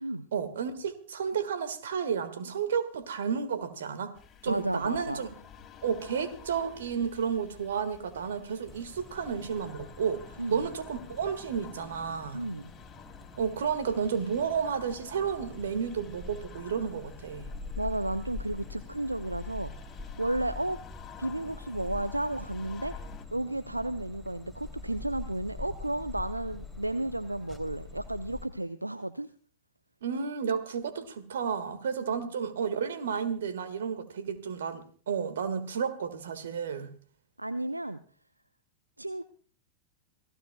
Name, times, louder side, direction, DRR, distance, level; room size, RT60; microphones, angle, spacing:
voice 1, 0.3-4.1 4.4-5.3 5.8-10.2 10.5-12.4 13.4-17.5 30.0-36.9, right 6 dB, 65° right, 1.7 m, -32 dB
sound 1, 4.1-23.3, left 8 dB, 25° left, 2.5 m, -51 dB
voice 2, 4.5-5.3 10.4-10.7 12.3-12.7 17.8-19.7 20.2-20.8 21.2-22.9 23.3-29.3 32.0-32.3 37.4-38.0 39.0-39.2, right 1 dB, 85° right, 0.5 m, -33 dB
sound 2, 8.7-28.5, left 3 dB, 5° right, 2.9 m, -45 dB
27.0 x 16.5 x 2.3 m
figure-of-eight pair, 90°, 0 cm